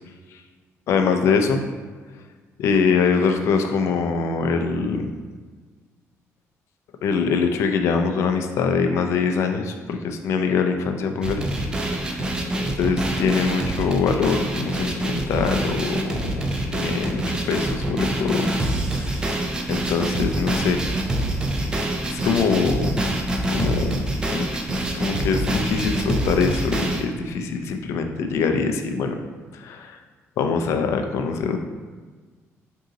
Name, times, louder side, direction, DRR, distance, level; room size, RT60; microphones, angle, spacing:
voice 1, 0.9-1.6 2.6-5.1 7.0-11.4 12.1-12.3 12.8-16.3 16.7-18.5 18.9-19.4 19.7-20.8 22.1-23.0 23.5-24.0 24.3-24.5 24.9-29.1 29.5-30.0 30.4-31.6, left 5 dB, 60° left, 5 dB, 0.3 m, -23 dB
sound 1, 11.2-27.0, right 1 dB, 15° right, 0.3 m, -25 dB
3.7 x 2.7 x 3.9 m, 1.4 s
cardioid pair, 180°, 5 cm